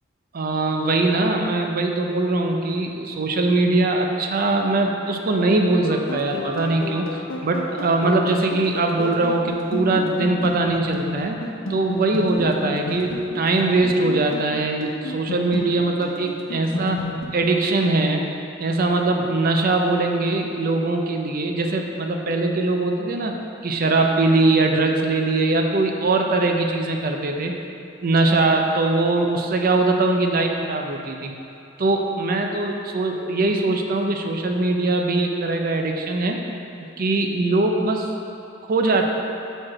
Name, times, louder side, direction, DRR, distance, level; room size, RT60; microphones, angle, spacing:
voice 1, 0.3-11.4 11.7-17.0 17.3-18.3 18.6-23.3 23.6-27.6 28.0-31.3 31.8-36.4 36.8-38.1 38.7-39.0, right 2 dB, 45° right, 3 dB, 0.5 m, -21 dB
sound 1, 5.8-17.3, left 2 dB, 90° left, 0.8 m, -31 dB
4.8 x 4.5 x 5.9 m, 2.8 s
head